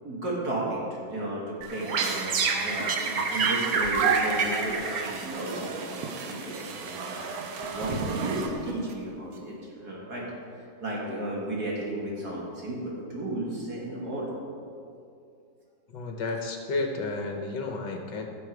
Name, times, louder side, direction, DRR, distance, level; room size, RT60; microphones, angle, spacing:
voice 1, 0.0-7.3 7.6-10.2 10.5-14.3, right 1 dB, 50° right, -4 dB, 2.7 m, -34 dB
sound 1, 1.6-8.9, right 5 dB, 90° right, 1.7 m, -29 dB
voice 2, 15.9-18.3, left 3 dB, 65° left, 3 dB, 1.6 m, -32 dB
16.0 x 6.6 x 4.7 m, 2.4 s
omnidirectional pair, 2.1 m